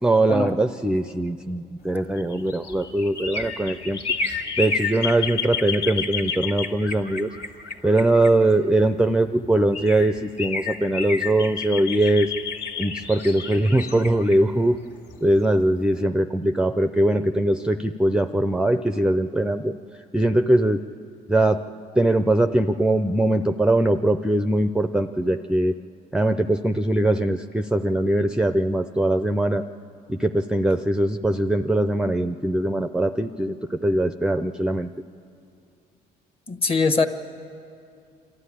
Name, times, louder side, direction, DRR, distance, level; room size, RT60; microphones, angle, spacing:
voice 1, 0.0-4.0 4.3-7.3 7.8-12.3 12.8-14.8 15.2-19.7 20.1-20.8 21.3-21.6 22.0-25.8 26.1-29.6 30.1-34.9, right 1 dB, 5° right, 9 dB, 0.5 m, -21 dB
sound 1, 2.1-8.9 9.4-9.5 9.7-15.5 15.9-16.0, left 5 dB, 75° left, 2.2 m, -30 dB
voice 2, 36.5-37.1, left 4 dB, 35° left, 8 dB, 1.3 m, -21 dB
26.5 x 13.0 x 9.9 m, 2.5 s
cardioid pair, 110°, 17 cm